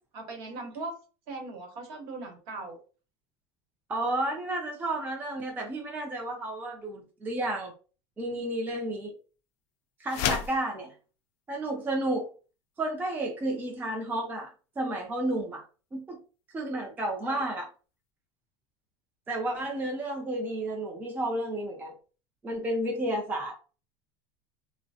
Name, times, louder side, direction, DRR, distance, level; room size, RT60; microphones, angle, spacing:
voice 1, 0.1-1.0 1.3-2.8 17.2-17.4, right 3 dB, 60° right, 4 dB, 1.0 m, -39 dB
voice 2, 3.9-7.7 8.2-9.1 10.0-10.9 11.5-12.3 12.8-14.5 14.8-15.6 15.9-16.2 16.5-17.7 19.3-21.9 22.4-23.5, right 1 dB, 10° right, 0 dB, 0.4 m, -31 dB
sound 1, 10.1-10.6, left 9 dB, 50° left, 0.4 m, -29 dB
3.1 x 2.0 x 2.7 m, 0.36 s
supercardioid pair, 155°, 15 cm